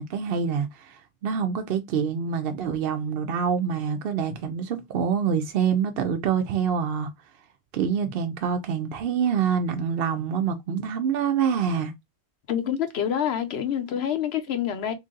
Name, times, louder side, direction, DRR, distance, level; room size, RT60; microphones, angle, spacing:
voice 1, 0.0-7.1 7.7-11.9, right 7 dB, 65° right, 0.7 m, -26 dB
voice 2, 12.5-14.9, left 9 dB, 70° left, 0.9 m, -27 dB
3.1 x 2.6 x 3.7 m
omnidirectional pair, 1.1 m